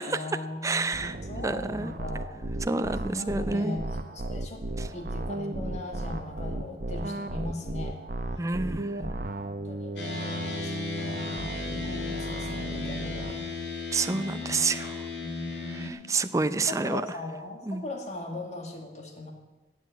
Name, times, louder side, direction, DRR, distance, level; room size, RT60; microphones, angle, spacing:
voice 1, 0.1-2.5 3.0-4.6 4.9-8.0 9.0-13.8 14.1-14.6 15.2-16.1 16.7-19.3, left 2 dB, 40° left, 2 dB, 2.2 m, -39 dB
voice 2, 0.6-1.2 1.4-1.9 2.7-3.8 8.4-8.9 13.9-15.1 15.8-17.0 17.7-17.8, right 3 dB, 20° right, 11 dB, 0.5 m, -29 dB
sound 1, 0.9-13.3, right 1 dB, 50° right, 0.9 m, -35 dB
sound 2, 10.0-15.9, left 4 dB, 80° left, 2.3 m, -35 dB
13.5 x 8.3 x 9.3 m, 1.2 s
head